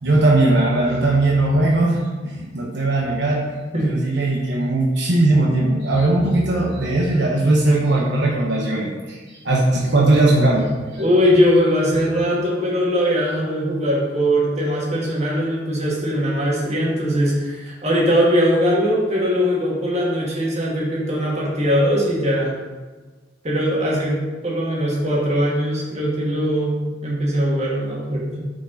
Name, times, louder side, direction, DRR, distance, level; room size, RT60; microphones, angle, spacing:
voice 1, 0.0-11.0, right 2 dB, 65° right, -3 dB, 1.2 m, -19 dB
voice 2, 11.0-22.6 23.4-28.4, equal, 35° right, -4 dB, 2.3 m, -20 dB
9.2 x 5.2 x 4.2 m, 1.3 s
head